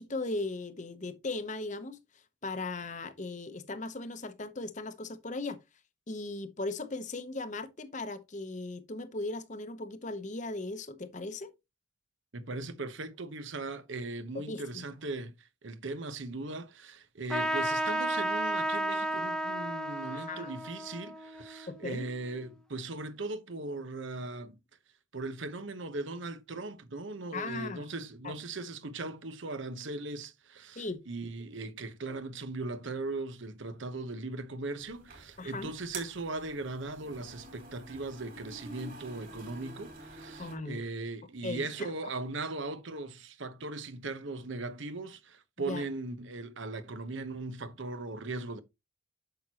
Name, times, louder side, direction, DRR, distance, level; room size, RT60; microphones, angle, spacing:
voice 1, 0.0-5.6 6.1-11.5 14.5-14.8 20.1-20.5 21.7-22.1 27.3-27.9 28.2-28.3 30.8-31.0 35.4-35.7 40.4-40.8 41.4-41.7 45.6-45.8, left 2 dB, 35° left, 0.8 m, -38 dB
voice 2, 12.3-24.6 25.1-48.6, right 2 dB, 65° right, 0.9 m, -39 dB
Trumpet, 17.3-22.3, right 1 dB, 5° left, 0.7 m, -33 dB
sound 1, 34.8-40.6, right 3 dB, 45° right, 3.0 m, -48 dB
8.7 x 6.1 x 2.9 m
head